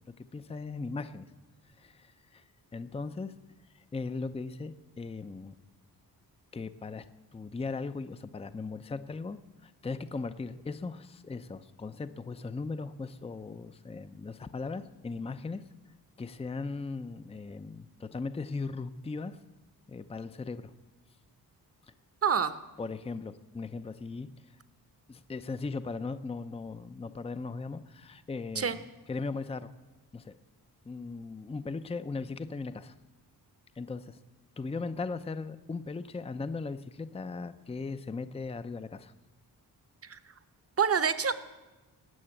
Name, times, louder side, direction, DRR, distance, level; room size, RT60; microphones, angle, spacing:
voice 1, 0.2-1.3 1.7-2.4 2.7-3.3 3.7-5.5 6.5-7.1 7.3-19.4 19.9-20.7 22.8-24.6 25.1-28.8 29.1-29.7 30.1-30.3 30.9-32.9 33.8-34.2 34.6-39.1, left 4 dB, 15° left, 11 dB, 0.5 m, -38 dB
voice 2, 22.2-22.6 28.6-28.8 40.0-40.2 40.8-41.3, right 7 dB, 40° right, 12 dB, 0.9 m, -26 dB
19.0 x 6.8 x 8.8 m, 1.2 s
cardioid pair, 90°, 38 cm